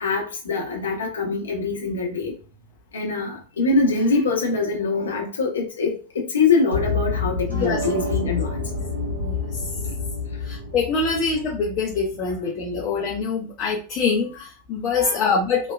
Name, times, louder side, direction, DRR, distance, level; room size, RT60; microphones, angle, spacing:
voice 1, 0.0-2.3 2.9-8.6 14.9-15.2, left 4 dB, 70° left, 0.8 m, -23 dB
sound 1, 6.7-12.7, left 3 dB, 75° right, 0.9 m, -28 dB
voice 2, 9.2-9.6 10.4-15.7, left 4 dB, 35° left, 0.5 m, -24 dB
3.0 x 2.2 x 2.3 m
figure-of-eight pair, 90°, 0 cm